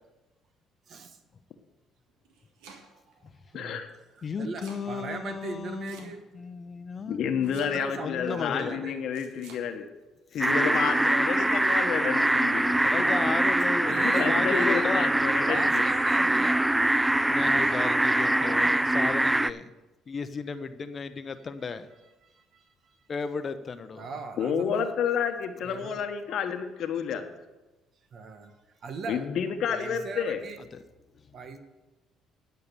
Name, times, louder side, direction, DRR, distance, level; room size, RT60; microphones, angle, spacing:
voice 1, 0.9-1.2 2.9-3.0 3.5-3.8 4.4-6.3 7.6-9.0 12.9-13.4 13.8-14.9 15.5-16.7 17.5-18.0 18.2-19.0 20.5-20.7 22.2-23.0 24.0-24.9 25.6-26.0 28.1-28.5 28.8-29.3 29.7-30.6 31.3-31.6, right 4 dB, 55° right, 7 dB, 1.3 m, -40 dB
Domestic sounds home sounds, 2.1-3.1 4.2-4.9 5.9-6.5 7.4-8.1 9.1-9.7, right 4 dB, 85° right, 1.8 m, -50 dB
voice 2, 3.5-3.9 7.1-9.9 10.3-12.8 13.9-15.8 17.5-17.7 24.4-27.3 29.1-30.4, left 7 dB, 65° left, 7 dB, 1.1 m, -30 dB
voice 3, 4.2-7.7 8.0-8.8 12.8-15.1 17.3-19.7 20.1-21.9 23.1-24.1 30.7-30.8 31.2-31.4, left 5 dB, 40° left, 11 dB, 0.8 m, -35 dB
sound 1, 10.4-19.5, right 1 dB, 10° right, 0.3 m, -23 dB
11.0 x 6.6 x 6.8 m, 1.1 s
supercardioid pair, 75°, 0 cm